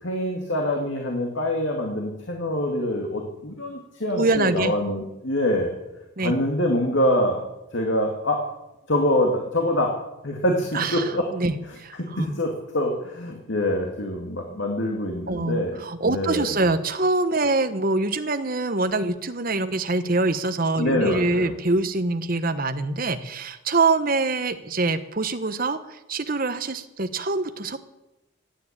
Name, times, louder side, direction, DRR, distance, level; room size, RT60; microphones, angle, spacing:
voice 1, 0.0-5.7 6.2-7.4 7.7-8.4 8.9-10.0 10.2-11.3 12.0-15.8 16.1-16.5 20.8-21.5, left 1 dB, 65° left, 1 dB, 2.3 m, -25 dB
voice 2, 4.1-4.7 6.2-6.3 10.7-12.4 15.3-27.8, right 3 dB, 45° right, 10 dB, 1.1 m, -24 dB
16.5 x 9.8 x 8.8 m, 0.94 s
head